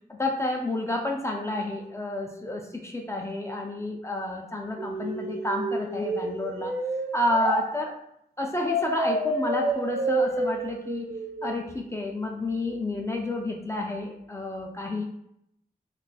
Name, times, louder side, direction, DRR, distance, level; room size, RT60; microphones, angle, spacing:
voice 1, 0.1-6.7 7.1-7.9 8.4-15.0, left 1 dB, 20° left, 0 dB, 0.3 m, -30 dB
sound 1, 4.8-7.6 8.6-11.6, right 1 dB, 75° right, 1.0 m, -29 dB
2.4 x 2.3 x 3.9 m, 0.78 s
wide cardioid pair, 110°, 16 cm